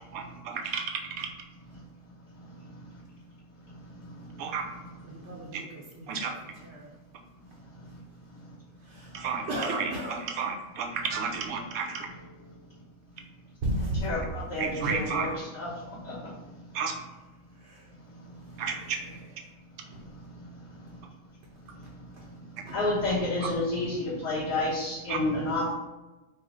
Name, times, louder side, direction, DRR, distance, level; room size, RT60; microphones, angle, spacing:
voice 1, 0.1-1.3 4.4-4.6 5.5-5.6 6.1-6.3 9.1-9.9 10.4-12.1 14.6-15.3 16.7-16.9 18.6-19.0 25.1-25.2, right 6 dB, 80° right, 3 dB, 1.1 m, -32 dB
voice 2, 5.0-6.9 8.8-9.2 9.5-10.2 13.6-14.2 14.8-15.0 17.6-17.9 18.7-19.2 19.9-20.0 22.2-22.3 22.6-23.2 23.4-23.5, right 1 dB, 60° right, -3 dB, 0.9 m, -35 dB
voice 3, 14.0-15.7 16.0-16.2 22.7-25.7, left 2 dB, 60° left, -13 dB, 1.9 m, -29 dB
4.6 x 2.0 x 4.6 m, 1.1 s
omnidirectional pair, 1.5 m